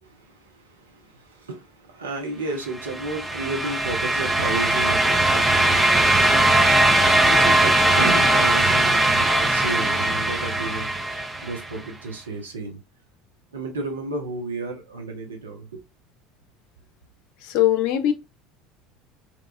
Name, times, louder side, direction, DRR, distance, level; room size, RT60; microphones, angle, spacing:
voice 1, 0.0-11.1 11.4-12.8 13.5-15.8, right 3 dB, 75° right, 0.7 m, -33 dB
sound 1, 2.8-11.7, right 1 dB, 10° right, 0.5 m, -20 dB
voice 2, 17.4-18.1, left 12 dB, 55° left, 0.5 m, -20 dB
2.9 x 2.3 x 2.4 m
figure-of-eight pair, 65°, 0 cm